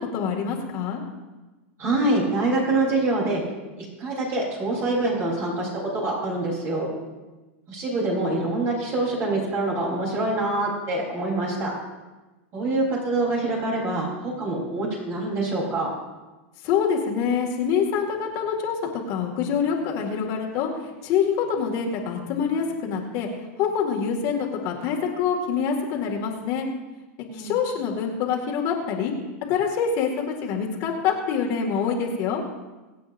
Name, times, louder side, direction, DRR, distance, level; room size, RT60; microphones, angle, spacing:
voice 1, 0.1-1.0 16.6-18.8 19.1-20.7 21.0-23.3 23.6-26.7 27.3-29.1 29.5-32.4, left 6 dB, 50° left, -1 dB, 2.1 m, -25 dB
voice 2, 1.8-3.4 3.8-6.9 7.7-11.7 12.5-15.9 27.3-27.6, right 2 dB, 35° right, -3 dB, 3.8 m, -25 dB
23.5 x 8.4 x 2.6 m, 1.2 s
supercardioid pair, 135°, 7 cm